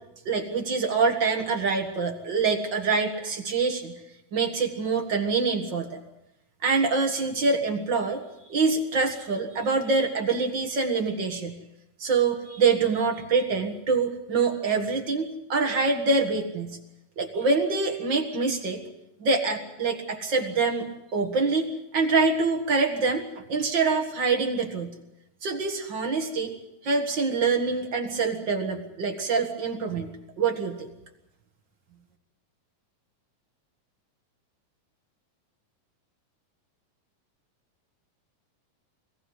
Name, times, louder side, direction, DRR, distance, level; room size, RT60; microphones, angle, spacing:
voice 1, 0.3-3.9 4.3-6.0 6.6-8.2 8.5-11.6 12.0-16.8 17.2-18.8 19.2-25.0 25.4-26.5 26.8-30.1 30.4-30.9, right 4 dB, 40° right, 4 dB, 1.9 m, -25 dB
22.5 x 15.0 x 9.5 m, 0.91 s
omnidirectional pair, 4.0 m